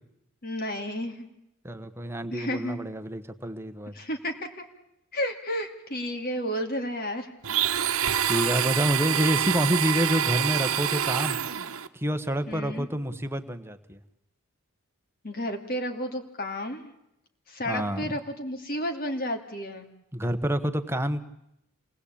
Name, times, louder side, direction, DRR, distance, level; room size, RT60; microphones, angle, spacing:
voice 1, 0.4-1.3 2.3-2.8 3.9-4.6 5.1-7.3 12.5-12.9 15.2-16.9 17.5-19.9, equal, 45° left, 5 dB, 2.6 m, -32 dB
voice 2, 1.6-3.9 8.3-11.4 11.9-14.0 17.7-18.1 20.1-21.2, equal, 10° right, 8 dB, 1.3 m, -28 dB
Domestic sounds home sounds, 7.4-11.9, right 9 dB, 85° right, 1.1 m, -26 dB
27.5 x 19.5 x 8.7 m, 0.83 s
head